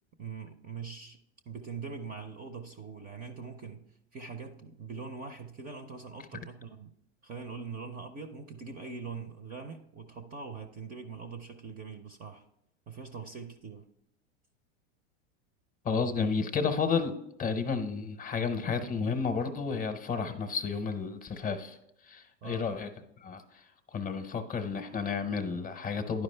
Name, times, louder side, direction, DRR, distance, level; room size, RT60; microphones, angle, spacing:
voice 1, 0.2-1.2 1.5-6.9 7.2-12.4 12.9-13.9 22.4-22.7, right 5 dB, 25° right, 9 dB, 0.4 m, -42 dB
voice 2, 15.8-21.8 22.0-22.9 23.2-26.2, left 5 dB, 25° left, 8 dB, 0.7 m, -32 dB
11.0 x 5.0 x 3.2 m, 0.81 s
supercardioid pair, 130°, 36 cm